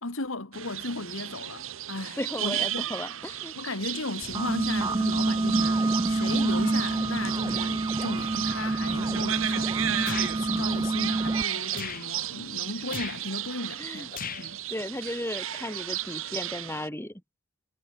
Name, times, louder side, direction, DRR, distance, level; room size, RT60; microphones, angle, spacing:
voice 1, 0.0-2.8 3.6-14.6, left 2 dB, 65° left, 2.2 m, -36 dB
sound 1, 0.5-16.9, right 12 dB, 65° right, 1.2 m, -34 dB
voice 2, 2.2-3.5 13.8-14.1 14.4-17.1, left 1 dB, 10° left, 5.6 m, -35 dB
sound 2, 4.2-11.4, right 2 dB, 20° right, 0.3 m, -27 dB
sound 3, 10.1-10.3 11.7-12.1 12.9-13.2 14.1-14.5, left 7 dB, 40° left, 1.3 m, -36 dB
head